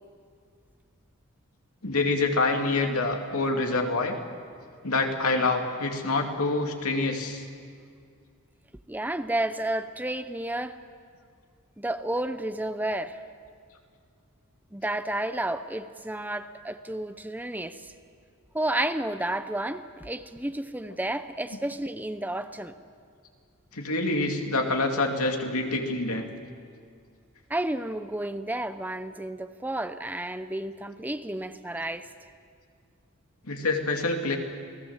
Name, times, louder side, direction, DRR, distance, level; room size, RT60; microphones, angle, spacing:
voice 1, 1.8-4.1 4.8-7.4 23.7-26.3 33.5-34.4, left 3 dB, 90° left, 3 dB, 2.6 m, -26 dB
voice 2, 8.9-10.8 11.8-13.2 14.7-17.9 18.5-22.7 27.5-32.1, right 1 dB, 10° right, 10 dB, 0.7 m, -31 dB
29.0 x 18.5 x 7.3 m, 2.2 s
head